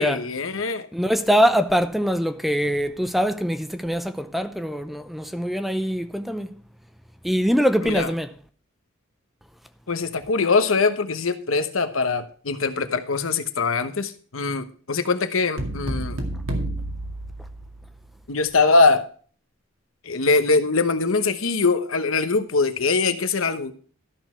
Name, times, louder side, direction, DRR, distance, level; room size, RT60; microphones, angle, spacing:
voice 1, 0.0-0.9 7.8-8.1 9.9-16.2 18.3-19.1 20.0-23.7, left 4 dB, 80° left, 1.0 m, -22 dB
voice 2, 0.9-6.6 7.2-8.3, equal, ahead, 0.6 m, -23 dB
sound 1, 15.6-18.1, right 1 dB, 70° right, 2.1 m, -30 dB
13.0 x 6.3 x 4.5 m
head